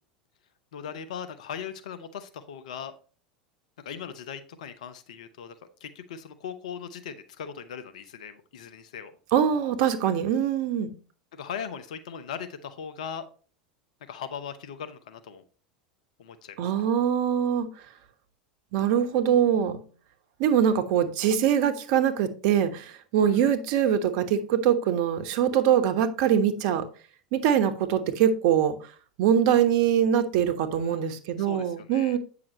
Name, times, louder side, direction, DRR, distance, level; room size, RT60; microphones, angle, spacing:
voice 1, 0.7-2.9 3.8-5.5 5.8-9.1 11.3-13.2 14.1-15.4 16.2-16.6 23.2-23.6 30.8-32.2, left 7 dB, 70° left, 0.8 m, -39 dB
voice 2, 9.3-10.9 16.6-17.7 18.7-19.8 20.4-26.9 27.3-28.7 29.2-32.2, right 9 dB, 55° right, 1.1 m, -23 dB
8.7 x 6.0 x 3.0 m
figure-of-eight pair, 80°, 4 cm